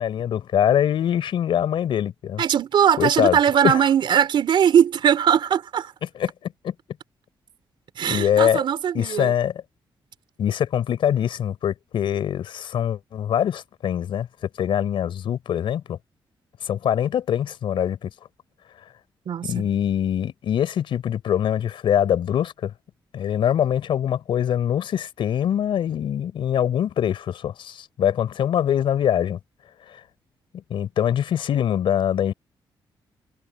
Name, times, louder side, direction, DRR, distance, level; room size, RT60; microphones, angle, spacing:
voice 1, 0.0-2.4 3.0-3.8 6.0-6.7 8.1-8.6 8.9-9.6 10.4-14.3 14.6-16.0 16.6-18.1 19.4-22.7 23.1-29.4 29.9-30.0 30.7-32.3, left 9 dB, 75° left, 4.3 m, -23 dB
voice 2, 2.4-5.9 8.0-9.3 19.3-19.7, right 9 dB, 65° right, 3.9 m, -20 dB
cardioid pair, 125°, 9 cm